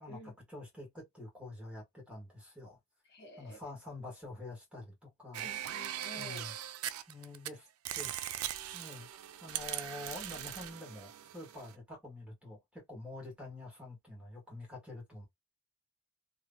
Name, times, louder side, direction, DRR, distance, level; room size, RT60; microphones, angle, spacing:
voice 1, 0.5-2.8 3.4-5.5 6.2-6.5 7.1-7.7 7.9-8.1 8.7-9.1 9.4-15.3, left 2 dB, 5° right, 1.6 m, -47 dB
voice 2, 3.1-3.6 5.4-6.5, equal, 50° left, 1.2 m, -50 dB
sound 1, 5.3-7.5 7.9-11.7, right 12 dB, 85° right, 0.4 m, -40 dB
3.1 x 2.3 x 2.6 m
head